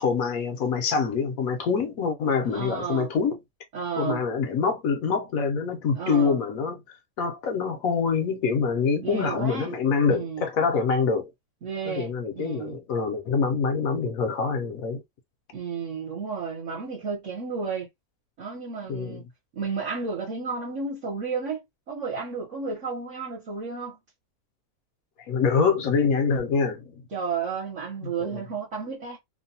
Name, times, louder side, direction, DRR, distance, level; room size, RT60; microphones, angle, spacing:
voice 1, 0.0-3.4 4.0-6.8 7.2-11.3 11.8-15.0 18.9-19.2 25.3-26.8 28.0-28.4, left 5 dB, 70° left, 1.1 m, -25 dB
voice 2, 2.5-3.1 3.7-4.2 5.9-6.4 9.0-9.7 10.1-10.4 11.6-12.8 15.5-17.9 18.4-19.2 19.6-21.6 21.9-24.0 27.1-29.2, right 5 dB, 55° right, 1.2 m, -32 dB
3.0 x 2.2 x 2.7 m
omnidirectional pair, 1.6 m